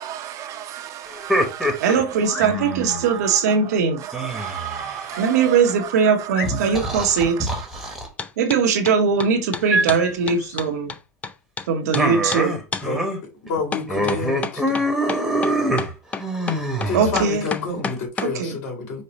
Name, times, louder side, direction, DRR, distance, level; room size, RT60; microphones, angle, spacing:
voice 1, 0.0-8.0, right 11 dB, 40° right, 0.6 m, -35 dB
sound 1, 1.1-3.1 4.1-5.5 6.4-8.1 9.7-10.1 11.9-13.2 13.5-13.6 13.9-17.5, right 1 dB, ahead, 1.0 m, -24 dB
sound 2, 1.2-1.3 2.1-2.5 5.1-5.3 5.8-5.9 6.3-6.9 9.7-10.0 10.4-10.6, left 5 dB, 35° left, 1.8 m, -36 dB
voice 2, 1.8-4.0 5.2-7.5 8.4-10.9 11.7-12.6 16.9-17.4 18.2-18.5, right 6 dB, 85° right, 0.9 m, -20 dB
sound 3, 8.2-8.6 8.9-11.7 11.9-12.1 12.3-12.4 12.7-12.9 13.7-18.3, left 5 dB, 15° left, 0.3 m, -29 dB
voice 3, 13.4-14.9 16.8-19.0, left 4 dB, 60° left, 2.3 m, -29 dB
5.3 x 2.1 x 4.0 m
supercardioid pair, 130°, 9 cm